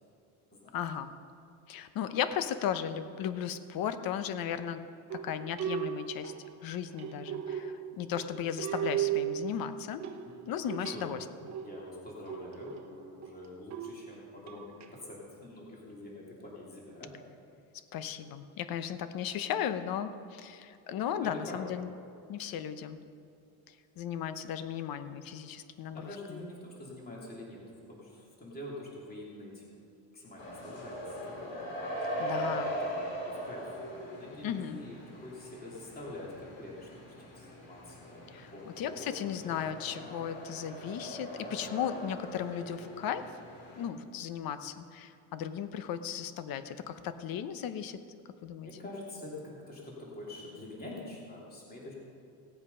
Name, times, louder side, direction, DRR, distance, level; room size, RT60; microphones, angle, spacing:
voice 1, 0.7-1.1 1.7-4.8 5.1-6.3 6.6-10.0 10.5-11.2 17.9-21.9 22.3-23.0 24.0-26.5 32.2-32.7 34.4-34.8 38.3-43.3 43.8-48.0 48.4-48.7, left 9 dB, 50° left, 11 dB, 0.9 m, -36 dB
sound 1, 5.1-14.9, right 10 dB, 35° right, 1.1 m, -37 dB
voice 2, 10.9-11.3 11.6-17.1 21.2-21.6 25.9-27.6 27.9-29.7 30.1-31.7 32.3-39.6 48.6-51.9, left 1 dB, 20° left, -4 dB, 3.0 m, -46 dB
sound 2, 30.4-43.9, equal, 75° left, 3.3 m, -40 dB
17.5 x 8.0 x 5.5 m, 2.5 s
cardioid pair, 130°, 46 cm